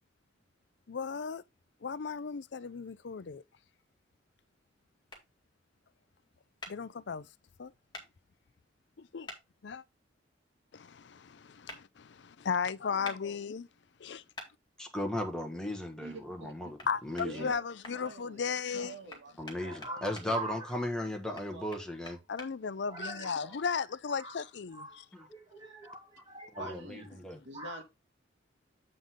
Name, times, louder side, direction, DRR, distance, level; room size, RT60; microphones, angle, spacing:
voice 1, 0.9-1.4 1.8-3.4 6.7-7.3 7.6-7.7 9.0-9.3 9.6-9.8 10.7-13.7 14.0-14.2 16.9-19.0 22.3-25.1, left 6 dB, 65° left, 0.5 m, -36 dB
sound 1, 5.1-5.2 6.6-6.7 7.9-8.1 9.3-9.4 11.7-11.8 13.0-13.2 14.4-14.5 16.8-16.9 17.2-18.0 19.1-20.3 21.4-22.5, left 2 dB, 25° left, 2.1 m, -45 dB
voice 2, 14.8-16.8 17.1-17.5 19.4-22.2 26.6-27.4, left 1 dB, 5° left, 1.5 m, -36 dB
voice 3, 16.0-16.5 17.2-17.6 17.9-18.5 18.8-20.4 21.0-21.7 26.6-27.1 27.4-27.8, right 2 dB, 70° right, 2.6 m, -46 dB
voice 4, 19.6-20.7 22.9-23.6 24.1-24.4 24.7-26.8 27.5-27.8, right 2 dB, 25° right, 2.8 m, -44 dB
7.8 x 5.3 x 3.6 m
head